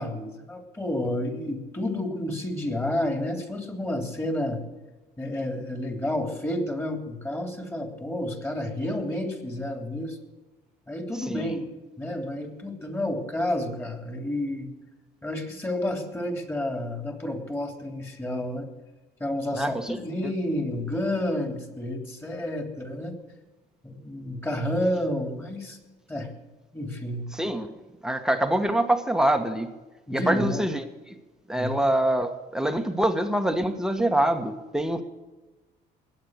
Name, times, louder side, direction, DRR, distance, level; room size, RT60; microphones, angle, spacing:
voice 1, 0.0-4.6 5.2-10.2 10.9-11.6 12.0-14.7 15.2-18.7 19.2-23.2 23.8-25.8 26.1-26.3 26.7-27.3 30.1-30.6 31.6-31.7, left 1 dB, 15° left, 5 dB, 3.1 m, -30 dB
voice 2, 11.3-11.6 19.5-20.0 27.3-27.7 28.0-29.7 30.1-31.2 31.5-35.0, right 1 dB, 5° right, 6 dB, 1.4 m, -25 dB
20.0 x 8.8 x 6.5 m, 1.2 s
cardioid pair, 110°, 17 cm